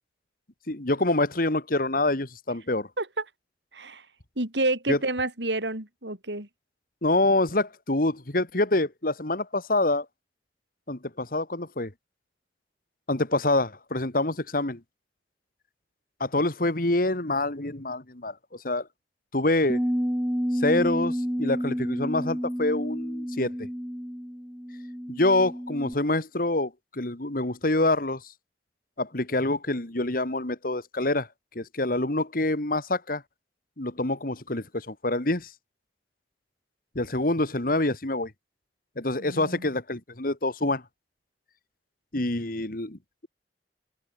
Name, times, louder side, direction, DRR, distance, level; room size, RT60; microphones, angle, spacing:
voice 1, 0.7-2.9 4.9-5.0 7.0-10.1 10.9-11.9 13.1-14.8 16.2-18.9 19.3-19.8 20.5-23.7 25.1-28.2 29.0-31.3 31.6-33.2 33.8-35.5 37.0-38.3 39.0-40.8 42.1-43.3, left 2 dB, 55° left, 2.1 m, -26 dB
voice 2, 3.7-4.1 4.4-6.5 39.2-39.7, right 2 dB, 80° right, 6.6 m, -29 dB
Bass guitar, 19.7-25.9, equal, 5° right, 2.1 m, -30 dB
head